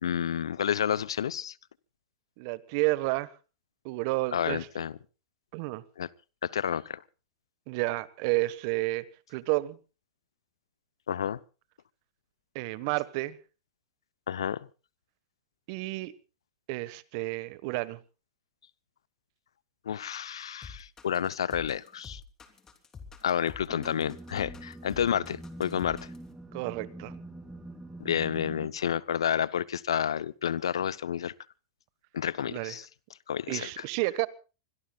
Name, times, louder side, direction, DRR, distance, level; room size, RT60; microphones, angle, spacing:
voice 1, 0.0-1.5 4.3-4.9 6.0-6.1 6.4-7.0 11.1-11.4 14.3-14.6 19.9-22.2 23.2-26.0 28.0-31.3 32.1-32.8 33.3-33.7, left 9 dB, 80° left, 0.7 m, -30 dB
voice 2, 2.4-3.3 3.8-4.7 5.5-5.8 7.7-9.8 12.5-13.4 15.7-16.1 16.7-18.0 26.5-27.1 32.5-32.8 33.5-34.3, right 21 dB, 55° right, 1.4 m, -31 dB
sound 1, 20.6-26.3, left 5 dB, 20° left, 3.4 m, -47 dB
sound 2, 23.7-28.7, right 1 dB, 5° right, 3.7 m, -44 dB
25.5 x 22.0 x 2.4 m
hypercardioid pair, 105°, 3 cm